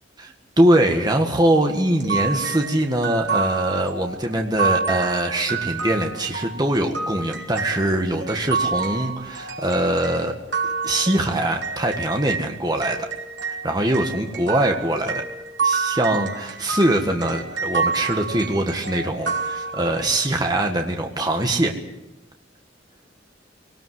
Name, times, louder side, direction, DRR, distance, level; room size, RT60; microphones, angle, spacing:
voice 1, 0.2-10.3 10.8-13.1 13.5-15.2 15.6-21.7, right 1 dB, 20° right, 3 dB, 1.7 m, -22 dB
sound 1, 2.0-12.5 12.8-20.2, right 5 dB, 75° right, 3.5 m, -28 dB
22.5 x 19.0 x 7.9 m, 0.96 s
head